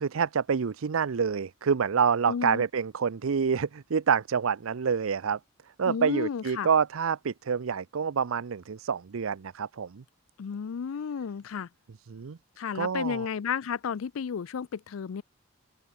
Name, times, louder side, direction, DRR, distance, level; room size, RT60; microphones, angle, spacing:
voice 1, 0.0-5.4 5.8-10.0 12.1-12.4 12.7-13.3, right 6 dB, 80° right, 0.5 m, -27 dB
voice 2, 2.3-2.6 5.9-6.7 10.4-11.7 12.6-15.2, left 6 dB, 85° left, 0.4 m, -32 dB
open air
head